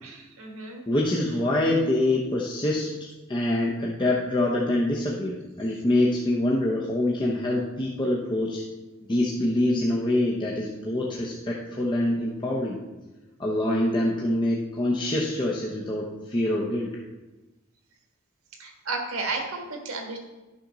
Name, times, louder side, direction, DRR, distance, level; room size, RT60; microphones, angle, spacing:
voice 1, 0.0-0.8 18.6-20.2, right 3 dB, 80° right, 2 dB, 1.5 m, -33 dB
voice 2, 0.9-8.6 9.1-12.8 13.4-16.9, left 1 dB, 20° left, -4 dB, 0.8 m, -25 dB
10.0 x 6.0 x 3.9 m, 1.1 s
head